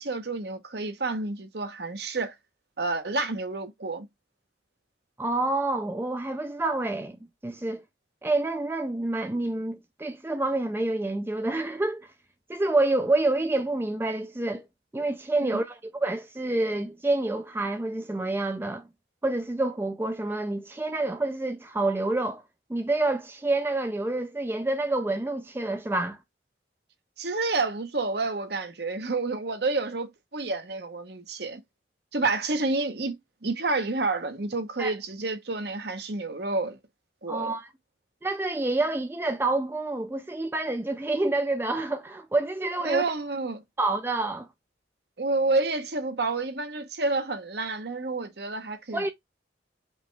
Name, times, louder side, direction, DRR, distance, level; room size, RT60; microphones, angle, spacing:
voice 1, 0.0-2.3 2.8-4.1 15.4-15.6 27.2-31.6 32.1-33.2 33.4-36.8 37.2-37.6 42.8-43.6 45.2-49.1, right 3 dB, 60° right, 0.9 m, -29 dB
voice 2, 5.2-7.2 7.4-7.8 8.2-12.1 12.5-14.6 14.9-18.8 19.2-22.4 22.7-26.2 34.8-34.9 37.3-37.7 38.2-43.1 43.8-44.5 48.9-49.1, right 2 dB, 10° right, 0.3 m, -28 dB
5.1 x 3.1 x 3.2 m
head